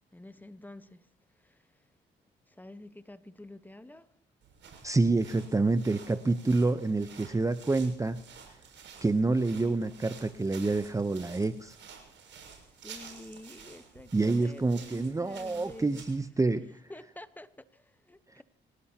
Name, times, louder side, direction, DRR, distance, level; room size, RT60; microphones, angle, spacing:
voice 1, 0.1-1.1 1.4-1.7 2.5-4.1 12.6-16.0 16.9-18.4, left 1 dB, 10° left, 1.2 m, -48 dB
sound 1, 4.4-16.3, right 6 dB, 70° right, 6.6 m, -51 dB
voice 2, 4.8-8.2 9.0-11.8 14.1-16.7, right 3 dB, 15° right, 0.8 m, -27 dB
26.5 x 17.5 x 2.9 m
cardioid pair, 90°, 20 cm